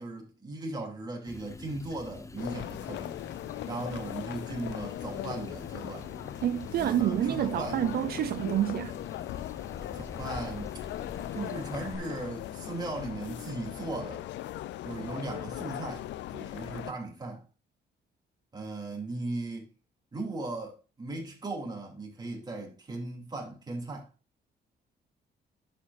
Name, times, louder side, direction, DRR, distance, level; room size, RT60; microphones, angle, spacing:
voice 1, 0.0-3.3 3.6-6.1 6.8-7.8 9.9-10.7 11.3-14.2 14.8-17.4 18.5-19.7 20.1-24.1, right 2 dB, 25° right, 2.9 m, -37 dB
sound 1, 1.3-12.0, left 3 dB, 15° left, 0.6 m, -46 dB
sound 2, 2.4-16.9, left 14 dB, 90° left, 0.4 m, -39 dB
voice 2, 6.4-9.0, right 12 dB, 60° right, 0.4 m, -28 dB
11.5 x 7.2 x 2.6 m
cardioid pair, 130°, 18 cm